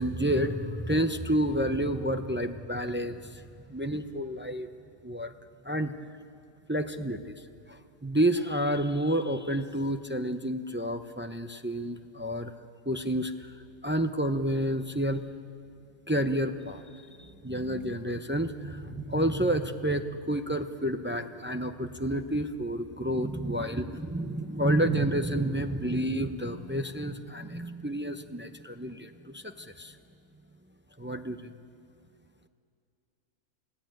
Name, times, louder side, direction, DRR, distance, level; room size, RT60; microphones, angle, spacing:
voice 1, 0.0-3.4 3.7-4.7 5.0-5.3 5.6-5.9 6.7-7.4 7.7-12.5 12.9-13.5 13.8-15.2 16.1-30.0 31.0-31.5, right 1 dB, 15° right, 7 dB, 0.3 m, -30 dB
29.0 x 17.5 x 9.0 m, 2.3 s
omnidirectional pair, 1.7 m